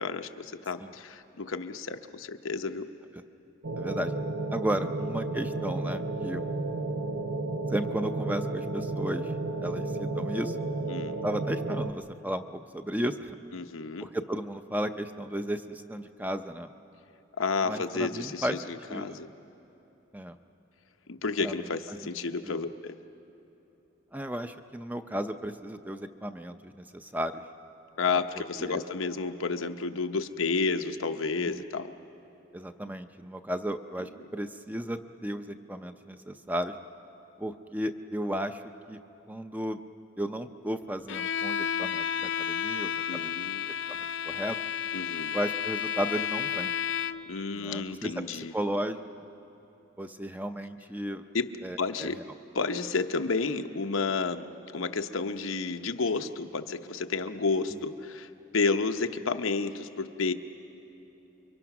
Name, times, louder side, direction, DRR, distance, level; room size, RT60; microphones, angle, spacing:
voice 1, 0.0-2.9 10.9-11.2 13.5-14.1 17.4-19.3 21.1-23.0 28.0-31.9 34.0-34.1 43.1-43.7 44.9-45.4 47.3-48.5 51.3-51.5 51.8-52.2 52.5-60.3, left 4 dB, 90° left, 7 dB, 0.8 m, -31 dB
sound 1, 3.6-11.9, right 2 dB, 80° right, 1.0 m, -32 dB
voice 2, 3.8-4.1 4.5-6.4 7.7-9.3 9.6-10.7 11.2-13.4 14.0-16.7 17.7-18.6 18.9-19.2 20.1-20.4 21.4-21.5 22.0-22.1 22.5-22.6 24.1-27.4 28.6-28.8 31.5-31.6 32.5-36.7 37.4-38.6 38.9-39.0 39.3-39.8 40.2-43.3 43.9-44.0 44.3-44.6 45.3-46.7 47.5-48.2 48.5-49.0 50.0-51.2 51.6-52.1, equal, 10° right, 8 dB, 0.5 m, -34 dB
Bowed string instrument, 41.1-47.4, left 8 dB, 65° left, 0.4 m, -32 dB
29.5 x 23.5 x 6.0 m, 3.0 s
head